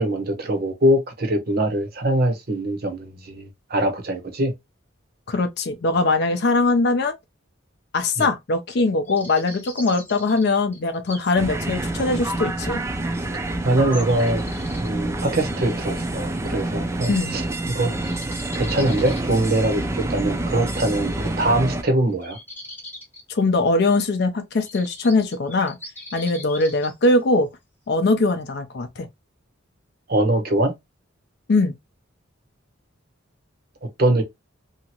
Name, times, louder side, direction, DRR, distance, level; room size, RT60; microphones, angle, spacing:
voice 1, 0.0-4.5 8.2-8.3 13.6-14.4 14.8-17.4 17.7-17.9 18.5-22.4 30.1-30.7 34.0-34.2, right 1 dB, 50° right, 0.8 m, -22 dB
voice 2, 5.3-7.1 7.9-12.8 17.1-17.4 23.3-25.8 26.1-27.5 27.9-29.1 31.5-31.7, left 3 dB, 50° left, 0.4 m, -21 dB
sound 1, 9.0-11.3 11.8-11.9 12.7-12.8 13.9-14.9 17.2-17.4 17.6-17.7 18.0-19.8 22.1-23.2 23.9-24.0 24.6-27.0, left 1 dB, 10° left, 0.7 m, -41 dB
sound 2, 11.4-21.8, right 2 dB, 15° right, 0.4 m, -27 dB
2.8 x 2.5 x 2.8 m
head